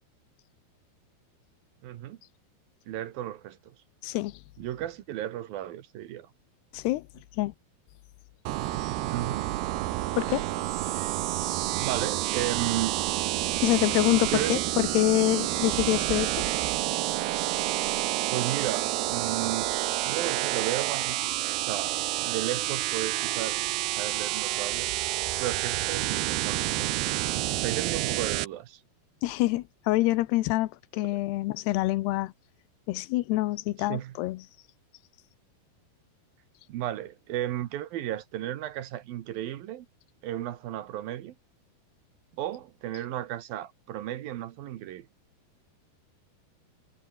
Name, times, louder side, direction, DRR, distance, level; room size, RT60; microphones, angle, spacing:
voice 1, 1.8-2.2 2.9-3.7 4.6-6.3 9.1-9.5 11.8-12.9 14.3-14.6 18.3-19.7 20.0-23.7 24.0-25.0 25.4-27.0 27.6-28.8 33.9-34.2 36.7-39.9 40.2-41.3 42.4-45.1, right 12 dB, 70° right, 2.9 m, -34 dB
voice 2, 4.0-4.4 6.7-7.0 7.4-7.5 10.1-10.4 13.6-16.3 29.2-32.3 32.9-34.4, left 18 dB, 90° left, 3.0 m, -26 dB
sound 1, 8.5-28.5, right 16 dB, 85° right, 3.1 m, -29 dB
omnidirectional pair, 4.6 m